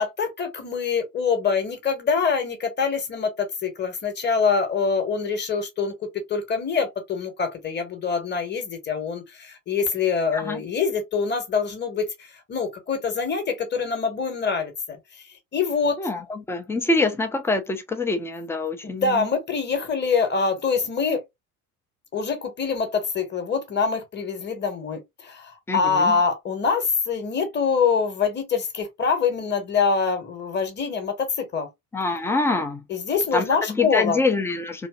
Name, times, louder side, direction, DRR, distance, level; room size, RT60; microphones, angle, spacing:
voice 1, 0.0-15.2 15.5-16.0 18.8-21.2 22.1-31.7 32.9-34.2, left 5 dB, 25° left, 0.9 m, -25 dB
voice 2, 16.0-19.3 25.7-26.2 31.9-32.8 33.3-34.9, left 3 dB, 5° left, 0.4 m, -25 dB
2.8 x 2.7 x 2.3 m
figure-of-eight pair, 60°, 45 cm